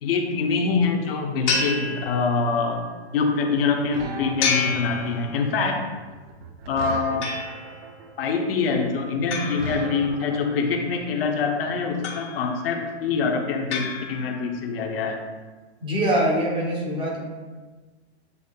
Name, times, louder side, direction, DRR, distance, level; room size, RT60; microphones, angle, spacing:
voice 1, 0.0-2.9 3.1-5.9 6.7-7.3 8.2-15.2, left 4 dB, 60° left, 3 dB, 0.8 m, -25 dB
sound 1, 1.5-2.7 4.4-5.7 7.2-7.9 9.3-10.5 12.0-12.7 13.7-14.6, left 4 dB, 90° left, 1.4 m, -30 dB
sound 2, 2.4-10.6, right 4 dB, 60° right, 0.6 m, -37 dB
voice 2, 15.8-17.2, right 1 dB, 15° right, -1 dB, 0.6 m, -23 dB
8.1 x 2.7 x 2.2 m, 1.3 s
hypercardioid pair, 155°, 34 cm